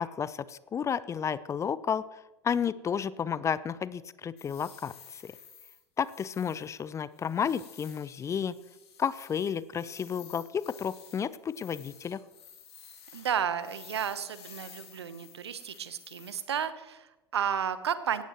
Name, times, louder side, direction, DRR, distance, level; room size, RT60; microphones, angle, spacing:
voice 1, 0.0-2.0 2.4-5.3 6.0-8.5 9.0-12.2, left 7 dB, 20° left, 18 dB, 0.5 m, -32 dB
sound 1, 4.4-16.4, left 7 dB, 75° left, 3.0 m, -53 dB
voice 2, 13.1-18.2, right 8 dB, 75° right, 13 dB, 1.0 m, -32 dB
18.0 x 14.0 x 3.0 m, 1.0 s
figure-of-eight pair, 85°, 14 cm